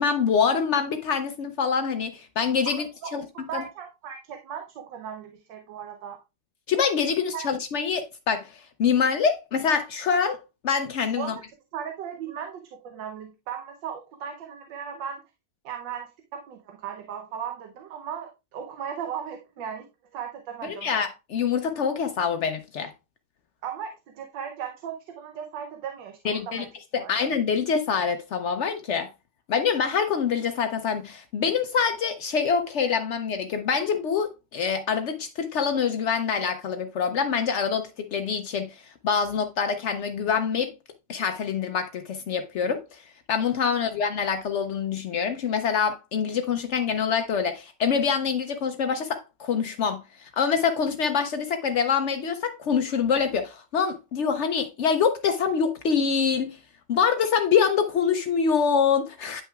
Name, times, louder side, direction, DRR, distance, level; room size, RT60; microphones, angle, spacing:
voice 1, 0.0-3.2 3.5-3.6 6.7-11.4 20.6-22.9 26.2-26.6 26.9-29.1 29.5-38.7 39.0-40.7 41.1-43.0 43.3-56.6 56.9-59.4, left 6 dB, 90° left, 0.6 m, -25 dB
voice 2, 2.7-6.2 7.3-7.4 11.2-11.4 11.7-15.2 15.6-19.9 20.1-20.9 23.6-26.7 26.9-27.1 43.7-43.9, right 8 dB, 80° right, 1.5 m, -37 dB
9.6 x 5.7 x 2.3 m
omnidirectional pair, 2.0 m